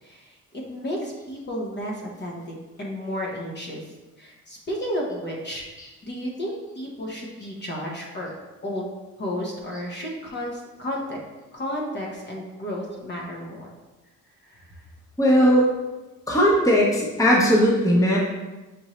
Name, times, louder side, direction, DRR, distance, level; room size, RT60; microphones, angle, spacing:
voice 1, 0.0-3.8 4.2-5.7 6.0-8.3 8.6-8.9 9.2-11.2 11.5-13.7 14.4-14.8, equal, 35° left, -2 dB, 1.0 m, -32 dB
voice 2, 15.2-15.7 16.3-18.2, equal, 10° left, -3 dB, 0.9 m, -18 dB
6.2 x 2.7 x 3.1 m, 1.1 s
cardioid pair, 90°, 30 cm